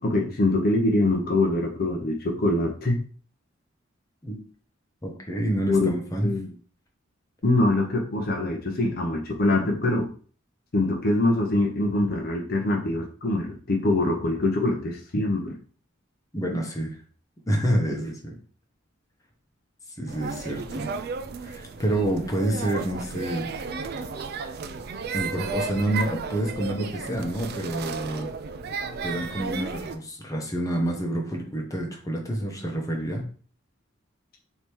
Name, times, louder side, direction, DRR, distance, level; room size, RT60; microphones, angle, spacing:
voice 1, 0.0-3.0 5.7-5.9 6.2-6.5 7.4-10.1 10.7-15.5, left 2 dB, 50° left, 1 dB, 0.7 m, -24 dB
voice 2, 5.0-6.3 16.3-17.0 17.5-18.3 20.0-20.9 21.4-23.5 25.1-28.3 29.0-33.2, right 1 dB, 15° left, 1 dB, 0.9 m, -28 dB
sound 1, 20.1-30.0, right 5 dB, 50° right, 0.4 m, -34 dB
3.3 x 2.9 x 4.5 m, 0.42 s
head